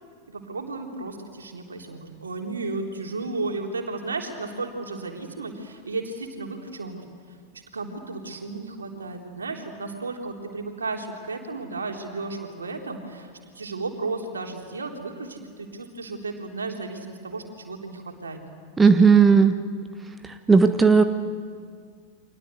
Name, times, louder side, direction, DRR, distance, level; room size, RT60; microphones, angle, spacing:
voice 1, 0.3-7.0 7.7-18.4, right 3 dB, 75° right, 3 dB, 3.5 m, -34 dB
voice 2, 18.8-19.6 20.2-21.0, right 5 dB, 10° right, 9 dB, 1.2 m, -16 dB
29.5 x 25.0 x 8.1 m, 2.1 s
figure-of-eight pair, 90°, 0 cm